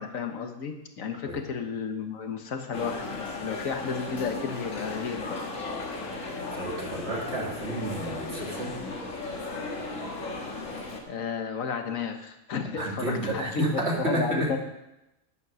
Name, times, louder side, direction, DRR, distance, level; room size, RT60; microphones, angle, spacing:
voice 1, 0.0-5.4 11.1-14.6, left 6 dB, 90° left, 6 dB, 1.5 m, -32 dB
sound 1, 2.7-11.0, left 3 dB, 75° left, 1.9 m, -35 dB
voice 2, 6.5-8.8 12.8-14.5, right 1 dB, 55° right, -2 dB, 2.6 m, -30 dB
9.6 x 9.1 x 6.1 m, 0.91 s
omnidirectional pair, 1.4 m